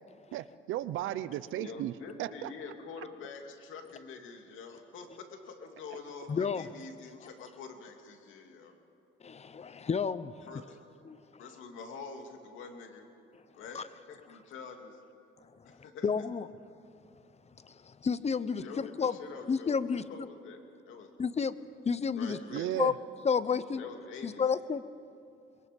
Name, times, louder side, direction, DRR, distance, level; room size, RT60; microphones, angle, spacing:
voice 1, 0.3-1.9 2.2-2.5 22.5-22.9, right 13 dB, 90° right, 15 dB, 0.7 m, -34 dB
voice 2, 1.6-8.8 10.4-10.8 11.4-13.1 13.5-15.0 15.6-16.3 18.6-21.1 22.2-22.8 23.8-24.4, left 5 dB, 80° left, 4 dB, 2.5 m, -46 dB
voice 3, 6.3-6.7 9.2-10.3 11.1-11.2 13.7-13.8 15.4-16.5 17.6-19.2 19.5-20.3 21.2-21.6 21.8-22.4 22.7-22.9 23.2-23.8 24.2-24.8, left 6 dB, 35° left, 15 dB, 0.9 m, -31 dB
25.0 x 22.0 x 5.3 m, 2.6 s
cardioid pair, 90°, 20 cm